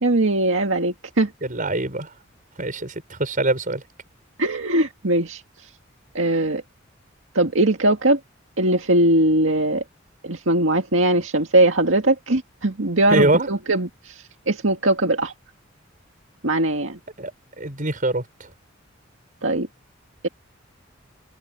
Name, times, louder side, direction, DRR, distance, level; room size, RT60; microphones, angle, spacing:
voice 1, 0.0-1.3 4.4-5.4 6.1-6.6 7.3-8.2 8.6-9.8 10.2-15.3 16.4-17.0 19.4-19.7, right 1 dB, 75° right, 2.0 m, -20 dB
voice 2, 1.4-2.1 2.6-3.8 13.1-13.5 17.2-17.3 17.6-18.2, right 2 dB, 45° right, 6.2 m, -23 dB
head